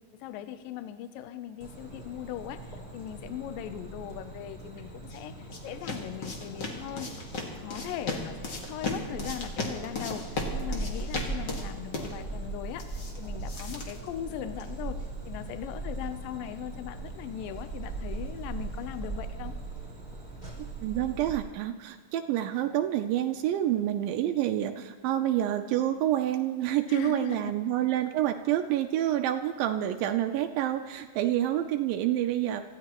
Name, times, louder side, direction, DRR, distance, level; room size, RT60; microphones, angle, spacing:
voice 1, 0.2-15.0 15.2-19.6 26.9-27.5 27.8-27.9, left 11 dB, 80° left, 10 dB, 2.3 m, -39 dB
sound 1, 1.6-21.4, right 3 dB, 15° left, 4.7 m, -39 dB
sound 2, 4.8-14.8, left 3 dB, 40° left, 1.8 m, -37 dB
voice 2, 20.6-32.6, right 12 dB, 80° right, 6 dB, 2.3 m, -28 dB
25.5 x 15.0 x 3.0 m, 1.5 s
omnidirectional pair, 4.1 m